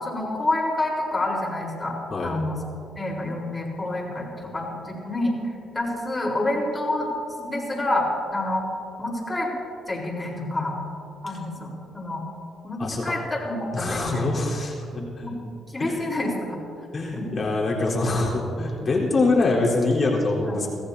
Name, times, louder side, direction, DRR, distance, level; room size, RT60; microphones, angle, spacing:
voice 1, 0.0-1.9 2.2-2.6 3.0-5.3 5.7-7.1 7.4-8.1 8.3-8.7 9.0-9.5 9.9-10.8 11.2-12.2 12.6-14.4 14.9-15.3 15.7-16.6 17.1-17.4 20.4-20.6, left 2 dB, 25° left, -2 dB, 4.3 m, -28 dB
voice 2, 12.8-13.2 13.7-15.3 15.8-16.0 16.9-20.7, left 2 dB, 40° left, -3 dB, 4.0 m, -24 dB
24.0 x 15.0 x 2.8 m, 2.6 s
cardioid pair, 90°, 0 cm